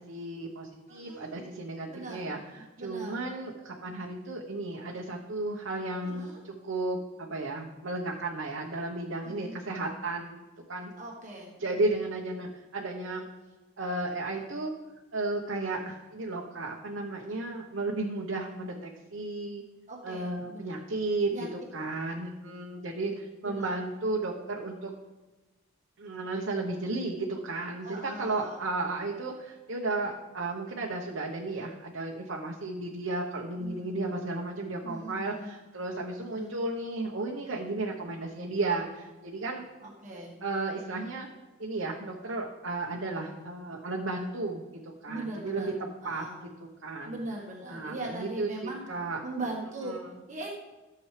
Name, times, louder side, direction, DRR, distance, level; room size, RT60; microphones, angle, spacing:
voice 1, 0.0-10.4 10.7-10.9 11.6-13.2 13.8-14.7 15.1-19.6 20.0-24.9 26.0-39.6 40.4-41.3 41.6-44.6 45.0-45.7 46.0-46.2 46.6-47.1 47.7-49.2 49.8-50.0, right 2 dB, 75° right, -1 dB, 1.0 m, -34 dB
voice 2, 0.9-1.4 1.9-2.3 2.8-3.2 6.0-6.4 9.2-9.5 11.0-11.5 19.9-20.8 21.3-21.5 23.4-23.7 27.8-28.6 33.6-33.9 34.8-35.5 36.2-36.5 39.8-40.3 45.0-45.7 46.0-46.4 47.0-48.8 49.2-50.5, right 2 dB, 40° right, -2 dB, 1.4 m, -40 dB
14.0 x 7.0 x 3.3 m, 1.2 s
head